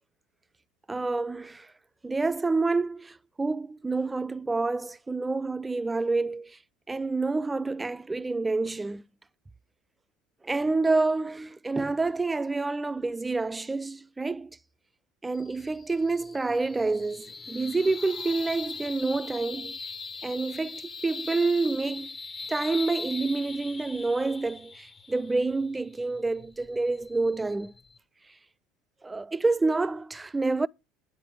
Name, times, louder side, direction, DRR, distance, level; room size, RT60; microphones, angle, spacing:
voice 1, 0.9-1.7 2.0-6.6 6.9-9.0 10.4-14.6 15.2-19.8 20.2-22.1 22.5-27.7 29.0-30.7, right 3 dB, 15° right, 0.3 m, -28 dB
sound 1, 15.3-28.0, left 4 dB, 35° left, 0.9 m, -40 dB
9.3 x 3.9 x 6.2 m
hypercardioid pair, 80°, 0 cm